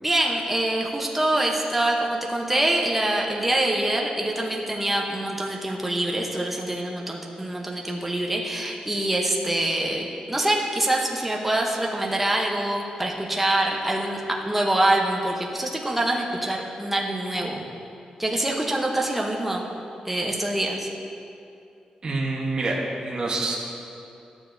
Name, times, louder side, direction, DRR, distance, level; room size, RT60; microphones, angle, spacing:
voice 1, 0.0-14.2 14.5-17.6 18.2-19.7 20.0-20.9, right 1 dB, 5° right, -1 dB, 0.7 m, -25 dB
voice 2, 22.0-23.5, right 2 dB, 35° right, -3 dB, 1.0 m, -27 dB
12.5 x 7.0 x 2.6 m, 2.6 s
wide cardioid pair, 145°, 2 cm